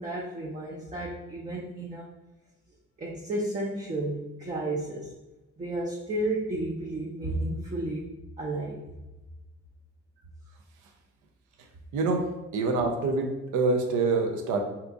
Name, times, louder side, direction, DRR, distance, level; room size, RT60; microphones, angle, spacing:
voice 1, 0.0-2.1 3.0-5.1 5.6-8.1 8.4-8.8, right 1 dB, 25° right, -3 dB, 0.5 m, -32 dB
voice 2, 12.5-14.6, right 3 dB, 85° right, 3 dB, 0.6 m, -26 dB
2.9 x 2.5 x 3.5 m, 1.0 s
cardioid pair, 90°, 30 cm